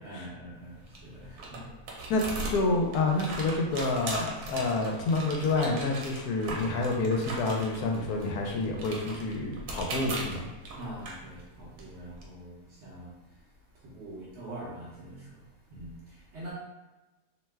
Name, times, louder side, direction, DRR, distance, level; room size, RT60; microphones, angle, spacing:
voice 1, 0.0-2.1 10.7-16.5, right 1 dB, 60° right, -6 dB, 0.8 m, -45 dB
sound 1, 0.5-12.2, right 2 dB, 85° right, 1.2 m, -40 dB
voice 2, 2.5-10.5, left 3 dB, 75° left, 0 dB, 1.0 m, -28 dB
2.8 x 2.2 x 3.2 m, 1.1 s
omnidirectional pair, 1.7 m